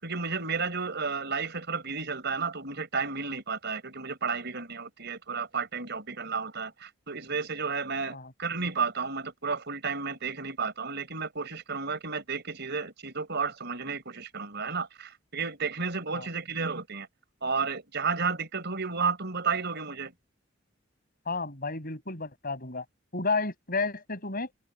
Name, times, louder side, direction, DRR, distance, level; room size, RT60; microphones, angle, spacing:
voice 1, 0.0-17.1 17.4-20.1, right 5 dB, 60° right, 5.2 m, -32 dB
voice 2, 21.3-22.8 23.1-24.5, left 3 dB, 50° left, 6.6 m, -31 dB
head